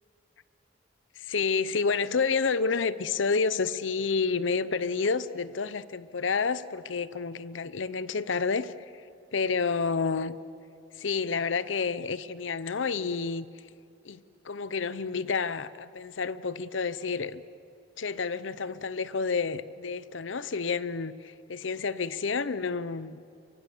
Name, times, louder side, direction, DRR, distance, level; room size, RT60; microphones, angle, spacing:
voice 1, 1.2-8.7 9.3-10.4 11.0-13.5 14.0-17.4 18.0-23.2, left 5 dB, 85° left, 0.7 m, -29 dB
23.5 x 23.5 x 7.1 m
head